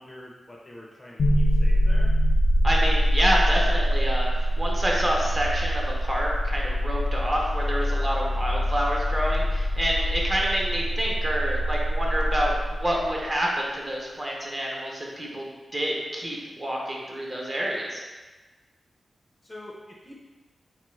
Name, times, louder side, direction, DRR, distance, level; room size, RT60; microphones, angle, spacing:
voice 1, 0.0-2.1 19.4-20.2, left 1 dB, 20° left, -3 dB, 0.5 m, -44 dB
sound 1, 1.2-13.3, equal, 80° left, 0.5 m, -24 dB
voice 2, 2.6-18.0, equal, 30° right, -3 dB, 0.7 m, -28 dB
4.6 x 2.3 x 3.0 m, 1.2 s
wide cardioid pair, 140°, 0 cm